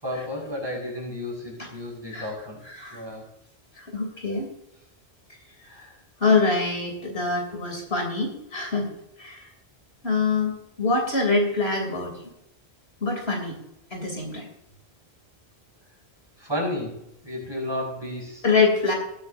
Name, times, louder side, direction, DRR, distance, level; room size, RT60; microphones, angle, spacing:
voice 1, 0.0-2.6 2.9-3.3 5.6-6.0 16.4-18.4, left 1 dB, 20° right, -2 dB, 5.9 m, -32 dB
voice 2, 2.6-3.0 3.8-4.5 6.2-8.9 9.2-9.5 10.0-12.1 13.0-13.6 13.9-14.5 18.4-18.9, left 4 dB, 65° left, 2 dB, 3.4 m, -24 dB
20.0 x 10.0 x 2.7 m, 0.82 s
omnidirectional pair, 1.1 m